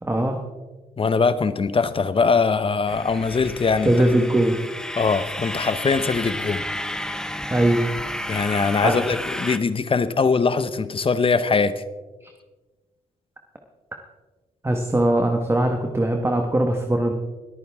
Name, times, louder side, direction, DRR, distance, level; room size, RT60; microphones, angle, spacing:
voice 1, 0.0-0.4 3.8-4.6 7.5-7.9 8.8-9.1 12.2-12.3 14.6-17.1, right 1 dB, 15° right, 4 dB, 1.4 m, -21 dB
voice 2, 1.0-3.9 5.0-6.6 8.3-11.8, left 4 dB, 35° left, 13 dB, 0.9 m, -21 dB
sound 1, 2.9-9.6, left 1 dB, 5° left, 0.9 m, -32 dB
21.5 x 9.2 x 3.6 m, 1.2 s
cardioid pair, 75°, 15 cm